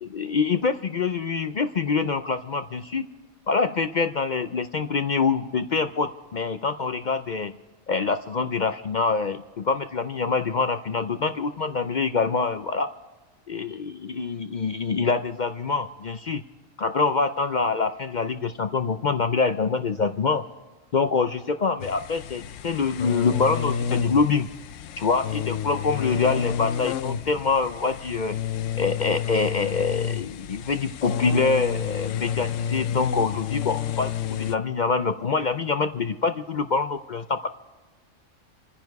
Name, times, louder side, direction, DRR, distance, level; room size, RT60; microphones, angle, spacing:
voice 1, 0.0-3.1 3.5-7.5 7.9-12.9 13.5-16.4 16.8-20.4 20.9-24.5 25.0-28.3 28.8-37.5, left 4 dB, 55° left, 10 dB, 0.5 m, -25 dB
sound 1, 21.8-34.6, left 8 dB, 75° left, 1.0 m, -30 dB
27.5 x 10.0 x 4.6 m, 1.3 s
omnidirectional pair, 1.3 m